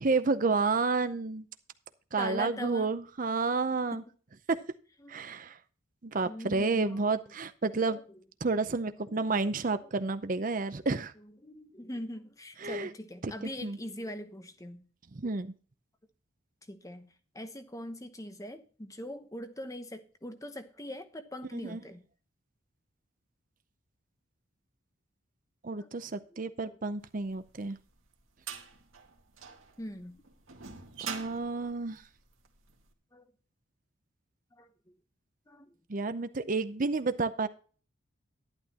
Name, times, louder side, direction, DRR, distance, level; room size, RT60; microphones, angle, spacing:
voice 1, 0.0-1.4 2.1-4.0 4.5-4.6 5.1-5.6 6.0-8.0 8.4-11.1 12.6-12.9 13.2-13.3 13.6-13.8 15.1-15.5 21.5-21.8 25.6-27.8 31.0-32.0 35.9-37.5, right 3 dB, 40° right, 0.6 m, -30 dB
voice 2, 2.2-2.9 3.9-4.0 5.0-5.2 6.2-7.0 7.9-8.0 9.1-9.3 9.8-10.0 11.2-14.9 15.2-15.3 16.7-17.1 17.3-22.0 25.8-25.9 29.8-30.2 33.1-33.3 34.6-34.7 35.5-35.7, left 1 dB, 15° left, 1.0 m, -42 dB
sound 1, 27.4-32.7, right 7 dB, 80° right, 2.1 m, -44 dB
11.5 x 11.5 x 2.9 m
head